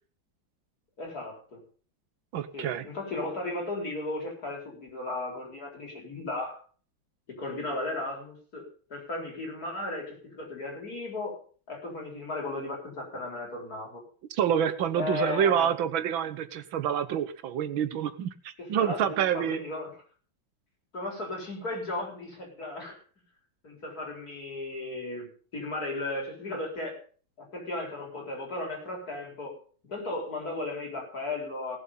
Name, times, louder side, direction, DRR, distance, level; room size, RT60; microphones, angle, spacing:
voice 1, 1.0-1.6 2.5-6.6 7.3-11.4 11.7-14.0 15.0-15.7 18.6-19.9 20.9-23.0 23.6-27.0 27.4-31.8, left 2 dB, 45° left, 0 dB, 4.6 m, -35 dB
voice 2, 2.3-2.8 14.3-19.6, right 9 dB, 75° right, 12 dB, 1.8 m, -27 dB
18.0 x 7.4 x 5.6 m, 0.42 s
omnidirectional pair, 2.2 m